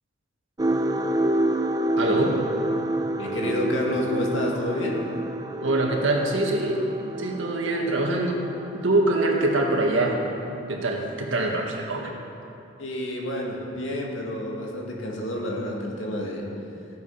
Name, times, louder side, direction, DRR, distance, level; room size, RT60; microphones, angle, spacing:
sound 1, 0.6-10.5 10.9-11.2 11.7-11.8, right 1 dB, 20° right, 0.5 m, -29 dB
voice 1, 2.0-2.4 5.6-8.5 8.7-10.2 10.7-12.1, right 2 dB, 70° right, 0 dB, 1.7 m, -24 dB
voice 2, 3.2-5.0 12.8-16.5, left 1 dB, 70° left, -1 dB, 2.2 m, -29 dB
15.0 x 8.6 x 5.6 m, 2.7 s
head